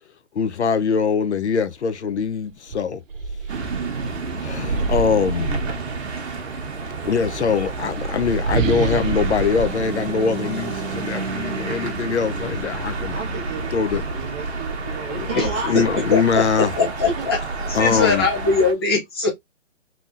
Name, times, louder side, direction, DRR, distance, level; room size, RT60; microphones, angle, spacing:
voice 1, 0.3-3.0 4.4-5.7 7.0-13.1 13.7-14.0 15.1-15.3 15.7-16.7 17.7-18.3, left 6 dB, 60° left, 0.7 m, -22 dB
sound 1, 2.1-2.3 2.7-6.3 7.3-10.9, right 4 dB, 90° right, 0.7 m, -27 dB
sound 2, 3.5-18.7, right 4 dB, 60° right, 1.1 m, -30 dB
voice 2, 13.0-16.0 17.2-17.3 17.9-18.1, right 3 dB, 10° right, 1.1 m, -32 dB
voice 3, 15.7-17.4 17.6-19.3, left 4 dB, 20° left, 0.8 m, -21 dB
3.8 x 2.9 x 2.5 m
hypercardioid pair, 175°, 38 cm